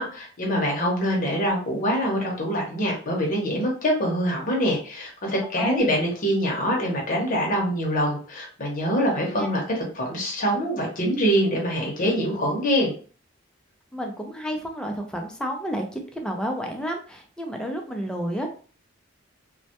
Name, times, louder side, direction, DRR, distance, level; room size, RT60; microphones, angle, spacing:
voice 1, 0.0-12.9, equal, 45° left, -1 dB, 0.7 m, -24 dB
voice 2, 5.6-5.9 9.2-9.5 13.9-18.5, equal, 5° left, 2 dB, 0.4 m, -30 dB
2.1 x 2.1 x 2.8 m, 0.40 s
head